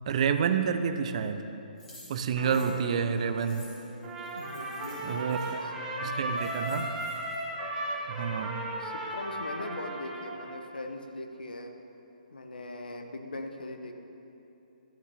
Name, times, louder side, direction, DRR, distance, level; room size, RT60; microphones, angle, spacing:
voice 1, 0.1-1.5 2.1-3.6 5.0-5.7 6.0-6.9 8.1-8.7, right 7 dB, 45° right, 9 dB, 0.5 m, -29 dB
sound 1, 1.8-5.5 6.0-6.1 6.3-7.4, left 1 dB, 10° left, 2.3 m, -53 dB
sound 2, 2.3-8.4 13.0-13.1, right 2 dB, 75° right, 1.9 m, -43 dB
Trumpet, 4.0-10.6, right 1 dB, 15° right, 1.4 m, -35 dB
voice 2, 4.3-5.7 6.0-6.4 8.1-8.4 8.8-11.7 12.3-13.9, left 2 dB, 75° left, 5 dB, 1.0 m, -41 dB
12.0 x 8.2 x 4.2 m, 3.0 s
figure-of-eight pair, 135°, 5 cm